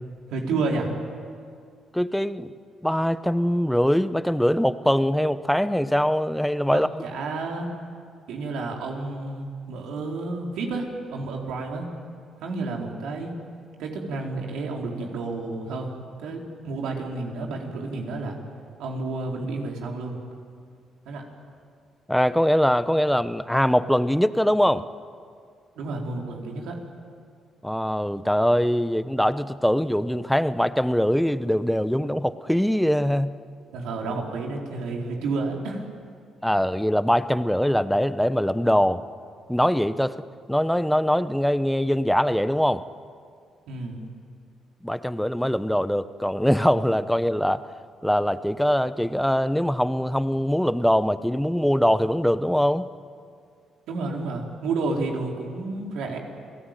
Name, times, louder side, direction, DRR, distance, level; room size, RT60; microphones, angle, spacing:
voice 1, 0.3-0.9 6.7-7.7 8.3-11.9 12.4-13.3 13.8-15.9 16.2-18.4 18.8-20.2 21.1-21.2 25.8-26.8 33.7-35.9 43.7-44.0 53.9-56.2, right 3 dB, 85° right, 0 dB, 4.3 m, -30 dB
voice 2, 1.9-2.5 2.8-6.9 22.1-24.8 27.6-33.3 36.4-39.0 39.5-40.2 40.5-42.8 44.8-47.6 48.0-52.9, equal, ahead, 13 dB, 0.9 m, -22 dB
28.5 x 18.5 x 9.1 m, 2.2 s
cardioid pair, 90°, 0 cm